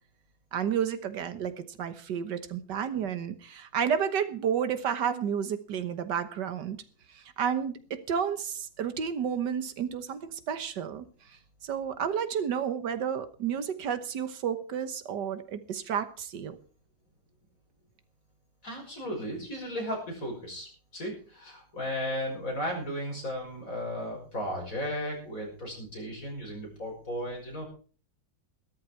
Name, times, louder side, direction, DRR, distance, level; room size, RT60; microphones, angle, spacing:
voice 1, 0.5-6.8 7.1-11.1 11.6-16.6, right 8 dB, 85° right, 12 dB, 1.8 m, -31 dB
voice 2, 18.6-27.6, equal, 50° left, 0 dB, 6.4 m, -35 dB
14.5 x 13.0 x 4.6 m, 0.40 s
omnidirectional pair, 1.8 m